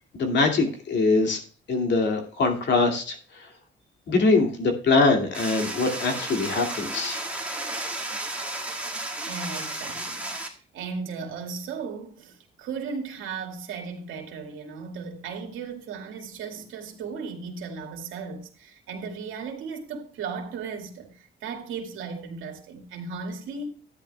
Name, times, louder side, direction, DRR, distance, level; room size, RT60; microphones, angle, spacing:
voice 1, 0.1-1.4 1.7-3.2 4.1-7.2, left 3 dB, 60° left, 2.3 m, -23 dB
sound 1, 5.3-10.5, right 2 dB, 5° right, 2.0 m, -33 dB
voice 2, 9.3-23.7, right 5 dB, 85° right, 2.2 m, -36 dB
13.0 x 10.0 x 2.3 m
cardioid pair, 90°, 20 cm